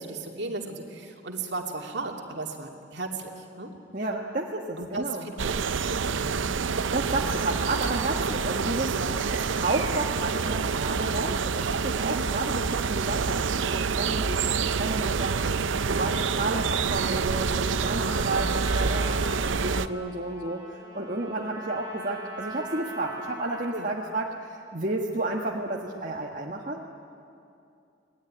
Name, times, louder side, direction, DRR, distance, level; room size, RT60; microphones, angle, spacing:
voice 1, 0.0-3.7 4.8-6.4 7.2-7.4 8.9-9.2 12.0-12.3 15.9-16.2 18.0-18.4 23.7-23.9, right 3 dB, 65° right, 2 dB, 2.7 m, -36 dB
voice 2, 3.9-5.2 6.2-8.9 9.3-20.6 20.9-27.0, right 2 dB, 45° right, -1 dB, 1.5 m, -32 dB
sound 1, 5.4-19.9, right 5 dB, 85° right, 0.6 m, -27 dB
Trumpet, 17.8-24.1, right 1 dB, 20° right, 6.0 m, -40 dB
27.5 x 20.0 x 10.0 m, 2.6 s
head